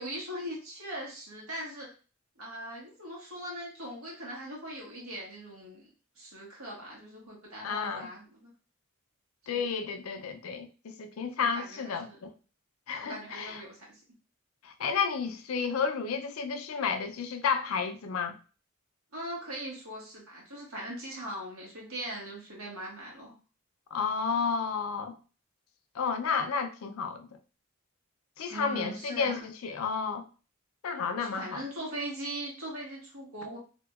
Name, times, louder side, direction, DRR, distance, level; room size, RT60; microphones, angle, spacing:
voice 1, 0.0-1.9 2.4-5.9 6.2-8.5 9.5-9.7 11.4-12.2 13.0-14.0 19.1-23.3 28.5-29.5 31.2-33.6, right 1 dB, 80° right, 1.5 m, -40 dB
voice 2, 7.6-8.1 9.5-12.3 12.9-13.6 14.6-18.4 23.9-25.1 25.9-27.3 28.4-30.2 30.8-31.6, left 5 dB, 85° left, 0.4 m, -31 dB
3.4 x 2.9 x 2.3 m
head